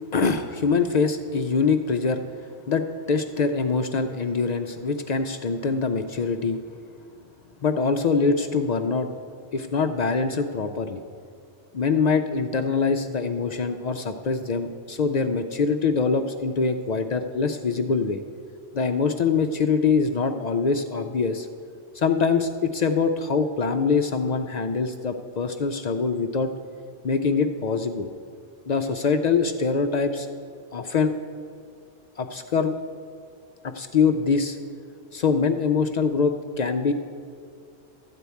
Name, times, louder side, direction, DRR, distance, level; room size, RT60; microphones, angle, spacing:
voice 1, 0.1-2.2 2.7-6.6 7.6-9.1 9.5-11.0 11.7-18.2 18.7-21.5 21.9-26.5 27.0-28.1 28.7-30.3 30.7-31.1 32.2-32.7 33.6-34.6 35.1-36.9, left 5 dB, 60° left, 7 dB, 0.4 m, -24 dB
13.0 x 4.5 x 8.3 m, 2.4 s
omnidirectional pair, 1.1 m